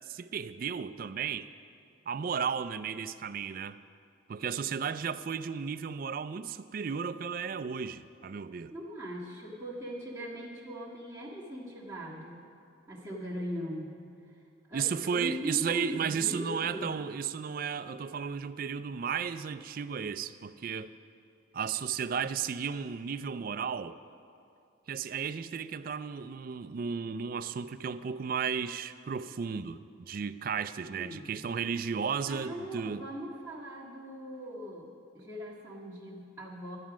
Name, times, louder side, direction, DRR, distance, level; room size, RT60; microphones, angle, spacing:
voice 1, 0.1-1.5 2.1-3.8 4.3-8.7 14.7-20.9 21.5-24.0 24.9-33.0, right 6 dB, 45° right, 13 dB, 0.3 m, -34 dB
voice 2, 8.7-12.4 12.9-14.0 14.7-17.0 30.9-31.4 32.2-34.9 35.1-36.8, equal, 10° right, -8 dB, 1.6 m, -40 dB
11.5 x 9.2 x 6.1 m, 2.5 s
head